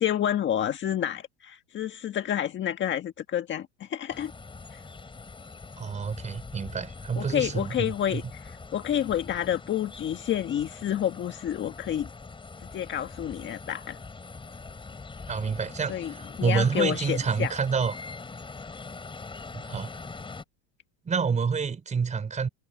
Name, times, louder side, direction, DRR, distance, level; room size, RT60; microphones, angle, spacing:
voice 1, 0.0-4.3 4.7-4.8 7.2-12.1 12.7-14.0 15.9-17.5, left 10 dB, 30° left, 1.6 m, -29 dB
sound 1, 4.1-20.4, left 4 dB, 15° left, 7.5 m, -43 dB
voice 2, 5.8-8.2 15.3-17.9 19.5-19.9 21.0-22.5, right 5 dB, 20° right, 4.2 m, -28 dB
supercardioid pair, 135°, 37 cm